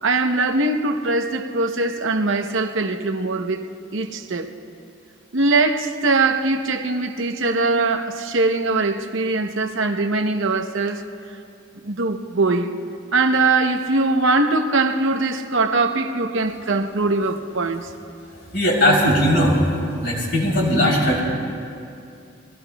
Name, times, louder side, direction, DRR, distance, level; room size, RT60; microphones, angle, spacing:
voice 1, 0.0-4.5 5.3-11.0 11.8-12.8 13.1-17.9, right 3 dB, 65° right, 0.8 m, -21 dB
voice 2, 18.5-19.6 20.0-21.2, equal, 55° left, 3.4 m, -18 dB
28.0 x 21.0 x 2.3 m
head